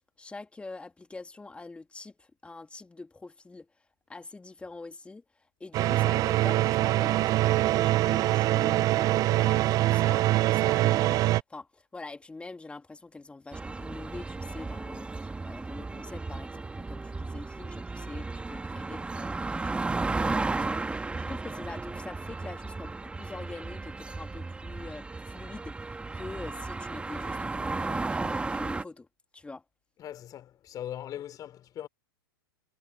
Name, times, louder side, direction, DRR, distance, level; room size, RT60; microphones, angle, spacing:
voice 1, 0.2-3.7 4.1-29.1 29.3-29.6, left 3 dB, 10° left, 2.3 m, -44 dB
sound 1, 5.7-11.4, right 15 dB, 30° right, 0.4 m, -24 dB
sound 2, 13.5-28.8, right 3 dB, 10° right, 1.7 m, -34 dB
voice 2, 30.0-31.9, left 11 dB, 30° left, 3.6 m, -40 dB
hypercardioid pair, 110°, 12 cm